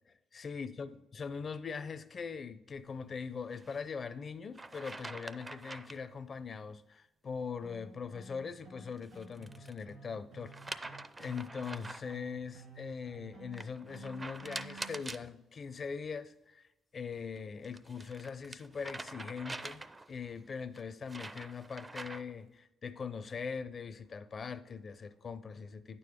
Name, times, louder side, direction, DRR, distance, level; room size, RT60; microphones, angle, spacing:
voice 1, 0.3-16.6 16.9-19.8 20.1-26.0, left 5 dB, 45° left, 0.5 m, -41 dB
sound 1, 3.5-3.8 4.5-6.1 8.9-9.8 10.5-12.2 13.5-15.3 17.4-20.2 20.7-22.4, right 2 dB, 20° right, 0.4 m, -45 dB
sound 2, 7.6-15.0, right 4 dB, 75° right, 2.2 m, -53 dB
9.1 x 6.9 x 3.6 m
cardioid pair, 90°, 0 cm